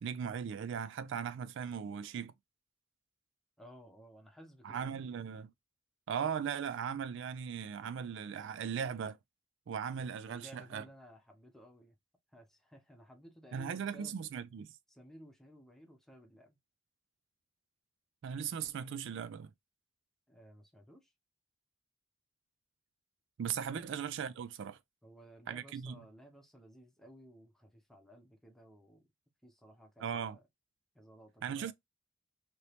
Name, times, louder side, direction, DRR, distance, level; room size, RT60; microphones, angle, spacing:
voice 1, 0.0-2.3 4.6-5.5 6.1-9.2 9.7-10.8 13.5-14.7 18.2-19.5 23.4-24.8 25.5-26.0 30.0-30.4 31.4-31.7, right 7 dB, 65° right, 0.3 m, -38 dB
voice 2, 3.6-5.0 9.8-11.9 12.3-14.2 14.9-16.6 20.3-21.1 23.6-23.9 25.0-29.1 29.4-30.4 30.9-31.7, equal, ahead, 0.8 m, -57 dB
2.9 x 2.7 x 3.2 m
head